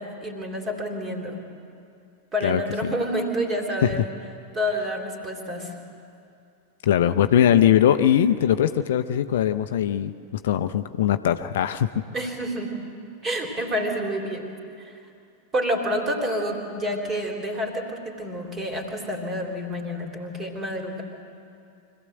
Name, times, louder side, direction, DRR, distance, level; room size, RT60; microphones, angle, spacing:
voice 1, 0.0-1.4 2.3-4.1 4.5-5.7 12.1-12.7 13.2-14.5 14.8-14.9 15.5-21.0, equal, 25° right, 2 dB, 3.3 m, -28 dB
voice 2, 6.8-10.1 10.4-12.0, left 10 dB, 60° left, 10 dB, 0.6 m, -20 dB
25.0 x 16.0 x 7.9 m, 2.5 s
figure-of-eight pair, 90°, 0 cm